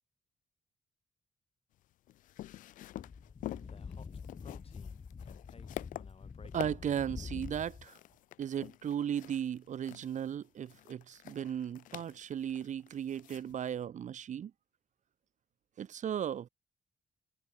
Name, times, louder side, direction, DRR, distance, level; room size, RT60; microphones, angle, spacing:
sound 1, 1.8-13.7, left 14 dB, 85° left, 1.5 m, -48 dB
Speech / Wind, 3.0-7.9, left 5 dB, 50° left, 4.5 m, -46 dB
voice 1, 6.5-8.0 8.4-14.5 15.8-16.5, right 9 dB, 65° right, 1.6 m, -36 dB
supercardioid pair, 50°, 13 cm